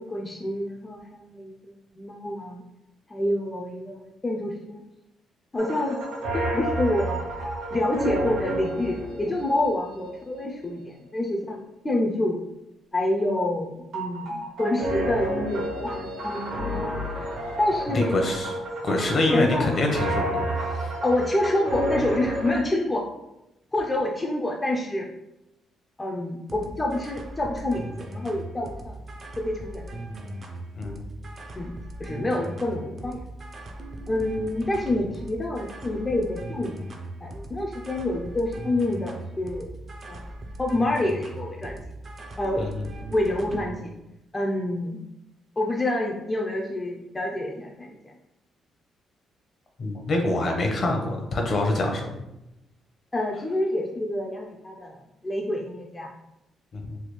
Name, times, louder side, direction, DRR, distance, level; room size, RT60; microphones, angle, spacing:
voice 1, 0.0-2.6 3.1-4.8 5.5-6.0 6.5-7.2 7.7-12.4 12.9-17.0 17.6-18.1 19.3-19.7 21.0-23.0 23.7-25.1 26.0-29.0 29.4-30.0 31.6-31.7 32.0-33.2 34.1-36.8 37.2-39.7 40.1-40.2 40.6-41.8 42.4-42.6 43.1-43.9 44.3-45.0 45.6-48.0 53.1-56.1, left 1 dB, 20° left, -1 dB, 0.4 m, -27 dB
sound 1, 5.6-10.5 13.9-22.5, right 1 dB, 80° right, 1.0 m, -30 dB
voice 2, 17.9-18.6 18.8-20.9 30.8-31.0 42.6-42.8 49.8-52.2 56.7-57.0, left 2 dB, 50° left, 2 dB, 0.7 m, -25 dB
sound 2, 26.5-43.8, right 1 dB, 40° right, 0.5 m, -39 dB
3.4 x 2.3 x 3.0 m, 0.90 s
cardioid pair, 90°, 0 cm